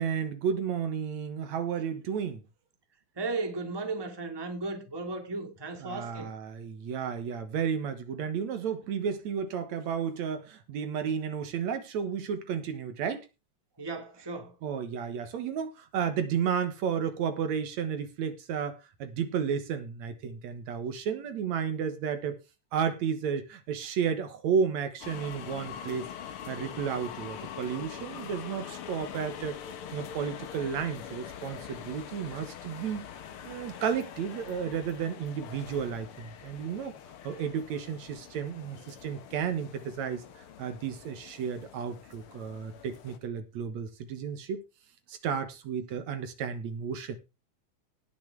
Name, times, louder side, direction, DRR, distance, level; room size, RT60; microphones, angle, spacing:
voice 1, 0.0-2.4 5.8-13.3 14.6-22.4 22.7-26.1 26.5-29.6 29.9-33.1 33.4-36.9 37.2-40.2 40.6-44.6 45.1-47.2, right 7 dB, 75° right, 2.6 m, -32 dB
voice 2, 3.2-6.3 13.8-14.5, right 3 dB, 10° right, 1.6 m, -35 dB
sound 1, 25.0-43.2, left 8 dB, 55° left, 1.8 m, -44 dB
18.5 x 6.3 x 3.5 m
omnidirectional pair, 3.3 m